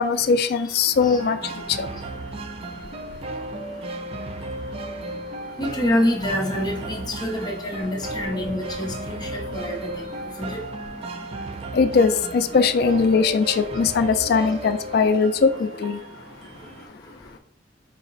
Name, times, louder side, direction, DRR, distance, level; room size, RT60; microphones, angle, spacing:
voice 1, 0.0-1.4 1.7-1.9 11.7-16.0, left 5 dB, 60° left, 10 dB, 0.4 m, -20 dB
sound 1, 1.0-16.9, right 2 dB, 35° right, 0.3 m, -35 dB
voice 2, 5.6-9.9 10.4-10.6, left 1 dB, 25° left, -1 dB, 0.7 m, -26 dB
4.6 x 2.1 x 3.9 m, 0.62 s
head